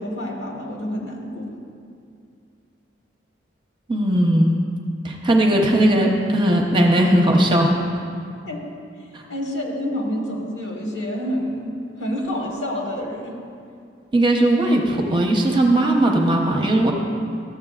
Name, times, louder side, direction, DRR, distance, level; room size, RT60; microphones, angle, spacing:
voice 1, 0.0-1.5 8.4-8.6 9.0-13.4, equal, 75° left, 0 dB, 1.5 m, -28 dB
voice 2, 3.9-4.6 5.0-7.7 9.1-9.2 14.1-16.9, right 1 dB, 25° right, 0 dB, 0.7 m, -18 dB
13.5 x 7.9 x 2.4 m, 2.4 s
head